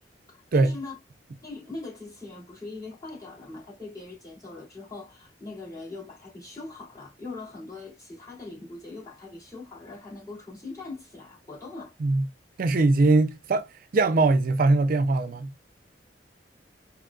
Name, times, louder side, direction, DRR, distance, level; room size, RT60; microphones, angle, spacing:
voice 1, 0.3-1.0 1.4-12.0, left 3 dB, 20° left, 3.2 m, -41 dB
voice 2, 12.6-15.5, right 3 dB, 50° right, 0.4 m, -21 dB
5.1 x 2.9 x 2.4 m
head